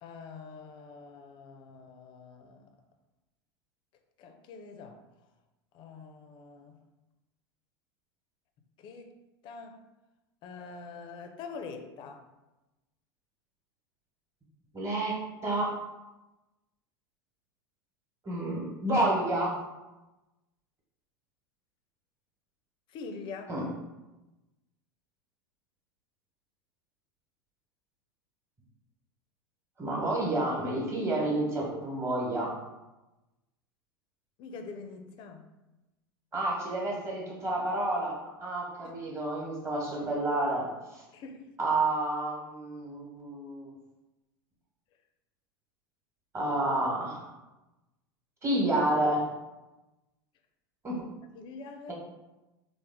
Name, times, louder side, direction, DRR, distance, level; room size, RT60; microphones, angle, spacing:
voice 1, 0.0-2.7 4.2-5.0 5.7-6.8 8.8-9.8 10.4-12.2 22.9-23.6 34.4-35.5 38.8-39.0 41.1-41.5 51.3-51.9, left 4 dB, 40° left, 5 dB, 0.4 m, -45 dB
voice 2, 14.7-15.8 18.2-19.6 23.5-23.7 29.8-32.5 36.3-41.0 41.6-43.7 46.3-47.2 48.4-49.2 50.8-51.0, right 1 dB, 20° right, -3 dB, 1.1 m, -30 dB
3.4 x 2.0 x 3.5 m, 1.0 s
hypercardioid pair, 85°, 12 cm